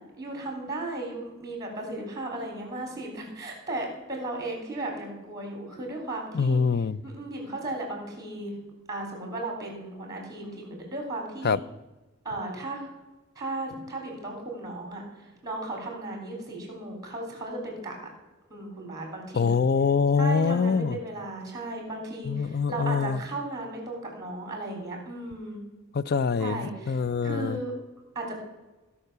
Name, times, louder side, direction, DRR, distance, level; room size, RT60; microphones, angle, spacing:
voice 1, 0.2-6.6 7.0-8.6 8.9-11.6 12.2-12.9 13.4-17.9 18.5-19.6 20.2-25.6 26.4-27.8 28.2-28.4, right 2 dB, 20° right, 3.6 m, -35 dB
voice 2, 6.3-7.0 11.4-11.6 19.3-21.0 22.2-23.2 25.9-27.6, left 5 dB, 50° left, 0.5 m, -24 dB
16.5 x 5.7 x 6.8 m
head